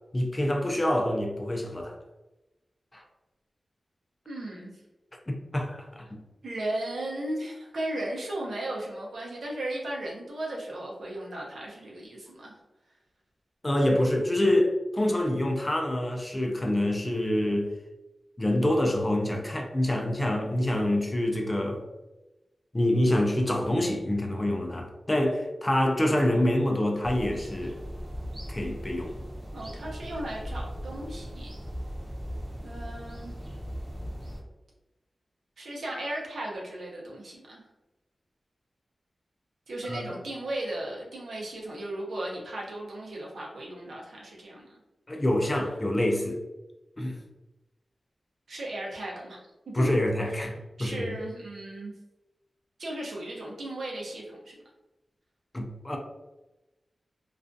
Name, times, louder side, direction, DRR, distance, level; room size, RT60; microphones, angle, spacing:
voice 1, 0.1-1.9 2.9-3.0 5.3-6.2 13.6-17.7 18.4-21.8 22.7-27.8 28.5-29.1 39.8-40.2 45.1-46.4 47.0-47.2 49.7-51.1 55.5-56.0, left 1 dB, 20° left, 2 dB, 0.4 m, -26 dB
voice 2, 4.3-4.8 6.4-12.6 29.5-31.5 32.6-33.3 35.6-37.6 39.7-44.8 48.5-49.4 49.7-49.9 50.3-50.4 50.8-51.9 52.8-54.6, right 1 dB, 85° right, -3 dB, 0.6 m, -36 dB
sound 1, 27.0-34.4, equal, 30° right, 0.6 m, -38 dB
2.4 x 2.2 x 2.5 m, 1.0 s
wide cardioid pair, 125°, 0 cm